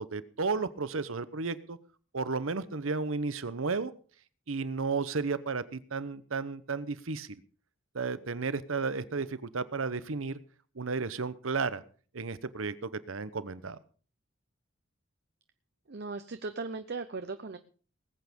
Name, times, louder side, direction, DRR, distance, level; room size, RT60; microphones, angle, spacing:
voice 1, 0.0-1.8 2.1-3.9 4.5-7.4 7.9-10.4 10.7-11.8 12.1-13.8, right 4 dB, 85° right, 15 dB, 0.9 m, -33 dB
voice 2, 15.9-17.6, right 3 dB, 55° right, 10 dB, 0.8 m, -38 dB
19.5 x 8.4 x 5.3 m, 0.41 s
head